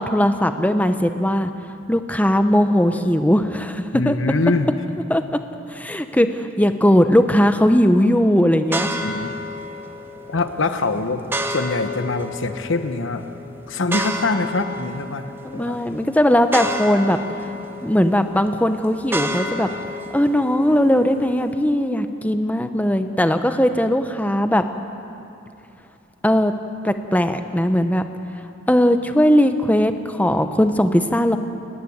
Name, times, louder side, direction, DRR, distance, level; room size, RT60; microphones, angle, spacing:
voice 1, 0.0-1.5 1.9-4.2 5.1-5.4 5.7-6.3 6.6-8.9 15.4-17.2 17.8-19.7 20.1-24.6 26.2-26.5 26.8-28.1 28.7-31.4, equal, 5° left, 8 dB, 0.8 m, -18 dB
voice 2, 3.9-4.7 6.2-6.3 9.0-9.3 10.3-13.3 13.7-15.8, left 3 dB, 65° left, 9 dB, 1.1 m, -24 dB
sound 1, 8.7-21.5, equal, 10° right, 1.1 m, -31 dB
29.0 x 10.0 x 9.5 m, 2.7 s
head